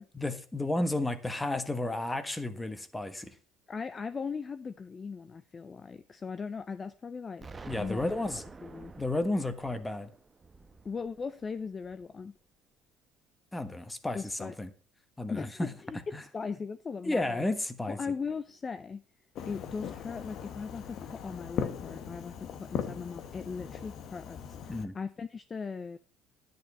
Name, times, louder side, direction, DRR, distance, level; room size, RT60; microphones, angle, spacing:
voice 1, 0.1-3.4 7.7-8.4 9.0-10.1 13.5-14.7 15.2-15.7 16.1-16.2 17.0-18.0 24.7-24.9, left 2 dB, 10° left, 1.3 m, -32 dB
voice 2, 3.7-7.5 7.8-8.1 8.6-8.9 10.8-12.3 14.1-14.5 15.3-16.0 16.3-17.5 17.9-19.0 19.5-26.0, left 5 dB, 25° left, 0.5 m, -38 dB
Explosion, 7.4-12.3, right 4 dB, 20° right, 0.9 m, -49 dB
Fireworks, 19.4-24.9, left 7 dB, 55° left, 1.2 m, -39 dB
10.5 x 9.5 x 4.3 m
cardioid pair, 120°, 0 cm